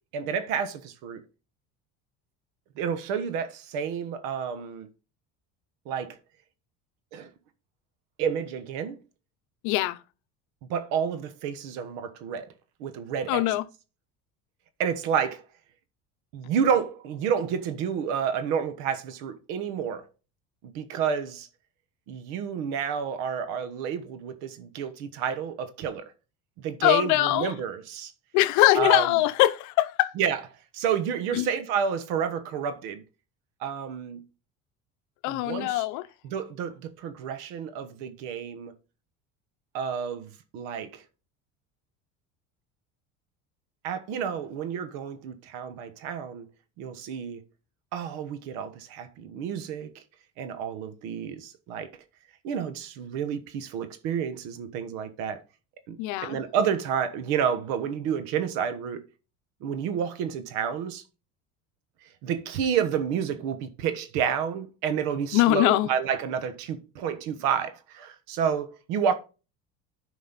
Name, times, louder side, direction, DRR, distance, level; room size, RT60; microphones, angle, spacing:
voice 1, 0.1-1.2 2.8-4.9 5.8-6.2 7.1-7.3 8.2-9.0 10.7-12.5 12.8-13.5 14.8-15.4 16.3-20.0 20.6-21.5 22.1-26.0 26.6-28.1 28.7-29.1 30.2-30.4 30.7-33.0 33.6-34.2 35.3-35.8 36.2-38.7 39.7-41.0 43.8-46.5 46.8-47.4 47.9-50.0 50.4-51.9 52.4-55.4 55.9-59.0 59.6-61.0 62.2-69.1, right 7 dB, 80° right, 1.3 m, -30 dB
voice 2, 9.6-10.0 13.3-13.6 26.8-27.5 28.3-30.1 31.3-31.5 35.2-36.0 56.0-56.4 65.3-65.9, left 17 dB, 65° left, 0.8 m, -22 dB
9.7 x 5.4 x 4.1 m
cardioid pair, 150°, 32 cm